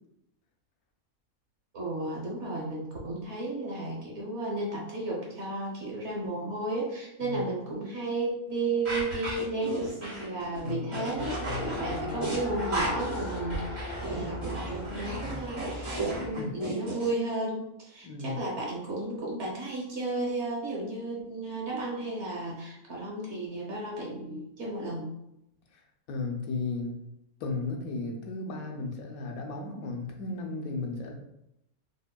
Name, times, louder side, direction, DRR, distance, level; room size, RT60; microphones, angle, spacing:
voice 1, 1.7-25.1, right 2 dB, 55° right, -3 dB, 1.2 m, -33 dB
sound 1, 8.8-17.1, right 2 dB, 85° right, 1.9 m, -35 dB
voice 2, 10.6-12.4 15.2-15.4 16.0-16.6 18.0-18.4 25.7-27.0 27.4-31.2, left 3 dB, 80° left, 2 dB, 1.1 m, -35 dB
Race car auto racing, 11.1-16.3, left 2 dB, 40° left, 0.4 m, -37 dB
5.0 x 2.2 x 2.2 m, 0.82 s
omnidirectional pair, 1.5 m